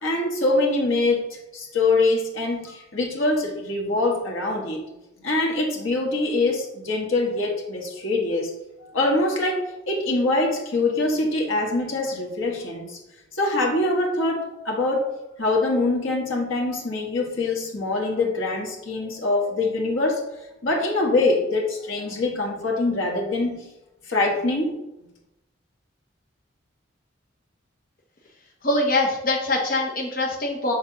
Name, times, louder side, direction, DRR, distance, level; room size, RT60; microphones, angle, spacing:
voice 1, 0.0-4.8 5.2-8.5 8.8-13.0 13.3-15.1 15.4-20.2 20.6-23.7 24.1-24.8, left 2 dB, 90° left, 0 dB, 1.5 m, -24 dB
voice 2, 28.6-30.7, left 2 dB, 45° left, 0 dB, 0.8 m, -23 dB
6.7 x 3.4 x 5.8 m, 0.94 s
head